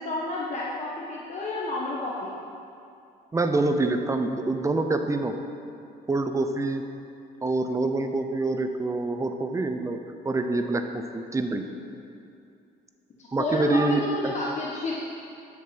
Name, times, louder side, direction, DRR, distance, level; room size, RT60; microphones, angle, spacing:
voice 1, 0.0-2.4 11.2-11.3 13.4-14.9, left 2 dB, 45° left, -4 dB, 1.4 m, -31 dB
voice 2, 3.3-5.3 6.1-6.8 7.4-10.0 10.2-11.6 13.3-14.3, right 2 dB, 20° right, 7 dB, 0.8 m, -26 dB
11.0 x 7.2 x 5.9 m, 2.6 s
cardioid pair, 110°, 17 cm